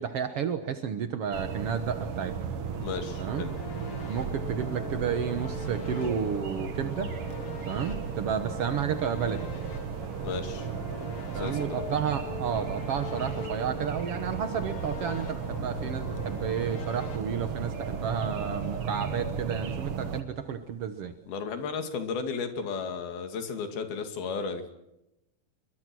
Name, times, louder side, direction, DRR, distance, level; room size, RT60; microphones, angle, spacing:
voice 1, 0.0-2.5 3.2-3.4 4.0-7.1 7.6-9.5 11.3-21.1, right 7 dB, 80° right, 8 dB, 1.3 m, -31 dB
sound 1, 1.3-20.2, right 6 dB, 55° right, 1.6 m, -35 dB
sound 2, 2.4-17.2, left 5 dB, 85° left, 4.3 m, -43 dB
sound 3, 2.7-8.1 8.4-8.7 9.2-9.4 10.2-13.5 13.8-20.0 20.6-20.7 21.0-21.3 21.6-22.3, left 3 dB, 40° left, 3.8 m, -48 dB
voice 2, 2.8-3.5 10.2-10.7 11.3-11.9 21.3-24.6, left 5 dB, 70° left, 7 dB, 4.2 m, -34 dB
29.0 x 24.0 x 6.2 m, 0.90 s
omnidirectional pair, 4.6 m